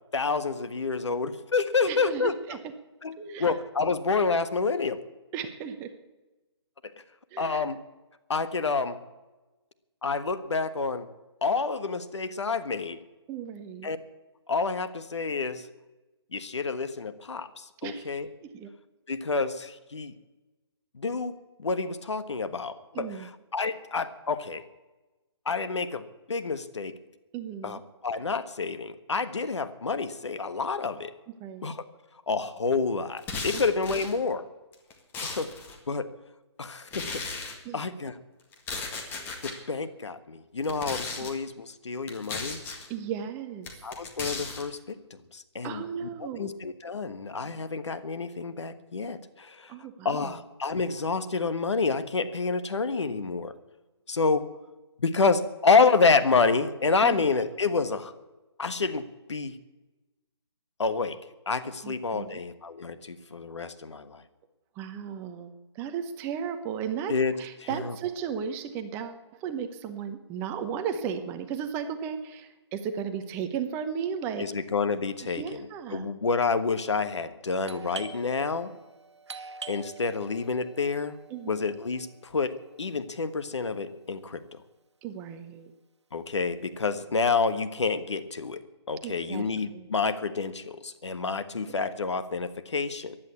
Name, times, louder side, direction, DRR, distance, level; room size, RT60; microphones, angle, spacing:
voice 1, 0.1-2.4 3.0-5.0 7.4-7.8 8.3-9.0 10.0-11.1 11.4-13.0 13.8-14.0 14.5-15.7 16.3-18.2 19.1-20.1 20.9-24.6 25.4-27.0 27.6-31.1 31.6-31.8 32.3-34.4 35.2-35.5 35.9-36.1 36.6-37.3 37.7-38.1 39.4-42.6 43.8-45.8 46.2-49.7 50.0-53.5 54.1-54.5 55.0-58.1 58.6-59.6 60.8-61.2 61.5-64.2 67.1-67.3 67.7-67.9 74.4-75.6 75.9-78.7 79.7-81.2 81.5-84.6 86.1-93.2, left 4 dB, 80° left, 11 dB, 1.4 m, -28 dB
voice 2, 1.9-2.7 3.2-3.6 5.3-5.9 7.3-7.7 13.3-13.9 17.8-18.1 18.4-18.7 22.9-23.3 27.3-27.8 31.4-31.7 33.5-33.6 37.6-37.8 41.2-41.3 42.9-43.7 45.6-46.5 49.7-50.4 57.0-57.2 61.8-62.4 64.8-74.5 75.2-76.0 81.3-81.7 85.0-85.7 89.0-89.5 89.7-89.9, right 7 dB, 15° right, 8 dB, 0.9 m, -35 dB
sound 1, 33.2-34.1 34.7-35.8 36.9-37.6 38.5-39.6 40.6-41.3 42.1-42.9 43.6-44.6, left 3 dB, 15° left, 1.8 m, -36 dB
Doorbell, 77.6-83.1, right 4 dB, 75° right, 1.5 m, -45 dB
15.0 x 10.5 x 8.4 m, 1.1 s
hypercardioid pair, 155°, 15 cm